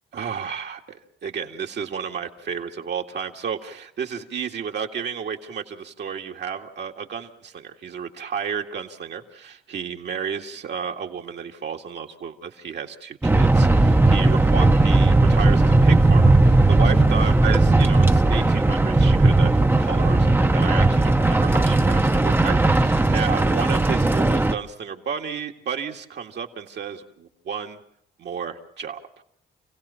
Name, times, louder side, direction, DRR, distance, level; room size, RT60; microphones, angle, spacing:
voice 1, 0.1-27.8 28.2-29.0, right 7 dB, 60° right, 2 dB, 2.1 m, -32 dB
sound 1, 13.2-24.5, right 2 dB, 10° right, 0.9 m, -17 dB
29.0 x 17.0 x 5.7 m, 0.66 s
cardioid pair, 90°, 20 cm